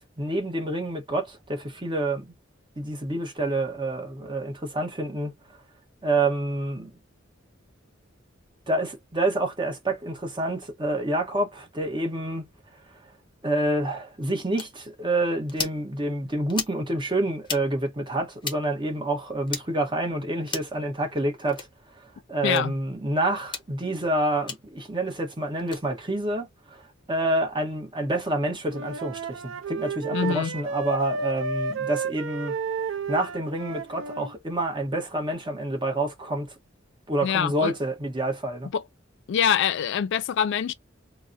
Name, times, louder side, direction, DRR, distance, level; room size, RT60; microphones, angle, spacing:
voice 1, 0.2-2.3 2.8-5.3 6.0-7.0 8.7-12.5 13.4-21.7 22.0-26.8 27.1-32.5 33.1-36.5 37.1-38.7, right 1 dB, 25° right, 0.9 m, -28 dB
sound 1, 14.6-14.7 15.5-15.8 16.5-16.8 17.4-17.6 18.4-18.6 19.5-19.6 20.5-20.8 21.5-21.7 22.5-22.6 23.4-23.7 24.5-24.6 25.6-25.8, left 5 dB, 25° left, 0.7 m, -33 dB
voice 2, 22.4-22.7 30.1-30.5 37.2-37.7 38.7-38.8 39.3-40.7, left 8 dB, 65° left, 0.3 m, -24 dB
Wind instrument woodwind instrument, 28.7-34.3, right 4 dB, 70° right, 0.5 m, -32 dB
3.7 x 2.0 x 2.6 m
head